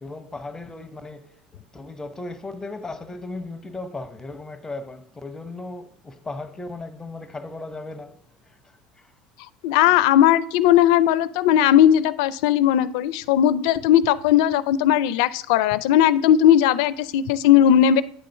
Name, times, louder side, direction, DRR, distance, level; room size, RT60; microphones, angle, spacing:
voice 1, 0.0-9.1, left 2 dB, 15° left, 0.8 m, -36 dB
voice 2, 9.6-18.0, left 11 dB, 75° left, 0.4 m, -17 dB
8.9 x 3.9 x 5.5 m
hypercardioid pair, 90°, 4 cm